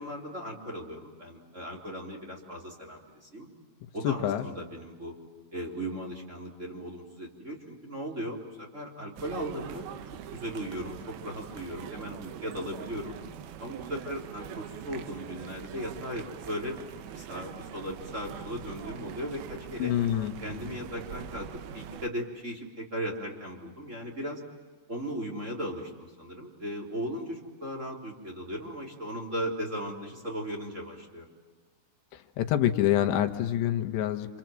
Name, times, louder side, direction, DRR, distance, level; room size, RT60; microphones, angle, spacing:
voice 1, 0.0-3.5 3.9-5.1 5.5-9.8 10.3-13.1 13.6-16.8 17.1-19.9 20.4-21.5 21.7-24.4 24.9-31.2, equal, 20° right, 0 dB, 3.2 m, -37 dB
voice 2, 4.0-4.4 19.8-20.6 32.4-34.4, left 11 dB, 90° left, 6 dB, 3.4 m, -27 dB
sound 1, 9.2-22.1, right 9 dB, 70° right, 2.7 m, -43 dB
28.5 x 27.0 x 7.6 m, 1.4 s
omnidirectional pair, 4.9 m